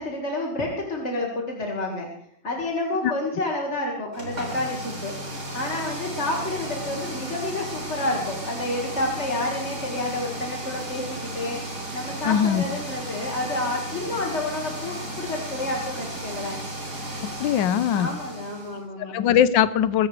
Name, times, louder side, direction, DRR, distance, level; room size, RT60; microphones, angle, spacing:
voice 1, 0.0-2.1 2.4-5.2 5.5-11.6 11.9-16.6 17.9-19.1, left 2 dB, 35° left, -1 dB, 2.1 m, -29 dB
sound 1, 4.1-18.8, right 1 dB, 55° right, 4.5 m, -34 dB
voice 2, 12.3-12.6 17.4-18.1 19.1-20.1, left 9 dB, 75° left, 14 dB, 1.4 m, -20 dB
23.0 x 15.5 x 3.3 m, 0.67 s
omnidirectional pair, 2.1 m